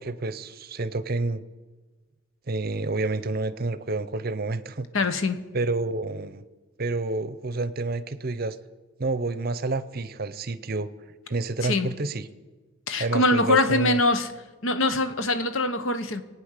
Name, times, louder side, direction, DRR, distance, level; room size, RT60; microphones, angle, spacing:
voice 1, 0.0-1.4 2.5-4.9 5.5-6.4 6.8-8.6 9.0-10.9 11.3-12.3 13.0-14.0, right 2 dB, 45° right, 14 dB, 0.7 m, -29 dB
voice 2, 4.9-5.5 11.6-11.9 12.9-14.3 14.6-16.2, left 2 dB, 70° left, 10 dB, 1.1 m, -23 dB
23.5 x 9.2 x 6.6 m, 1.3 s
head